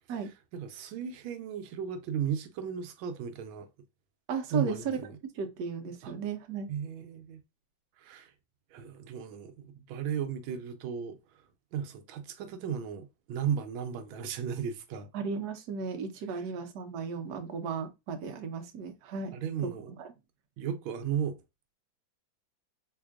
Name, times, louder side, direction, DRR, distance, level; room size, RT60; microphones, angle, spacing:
voice 1, 0.5-3.7 4.5-5.1 6.0-6.1 6.7-7.4 8.0-8.3 8.7-11.4 11.7-15.1 16.3-16.4 19.3-19.9 20.6-21.4, right 8 dB, 85° right, 1.4 m, -35 dB
voice 2, 4.3-5.0 5.3-6.7 15.1-19.3 19.6-20.1, right 5 dB, 65° right, 1.1 m, -35 dB
3.7 x 3.3 x 2.3 m
omnidirectional pair, 2.1 m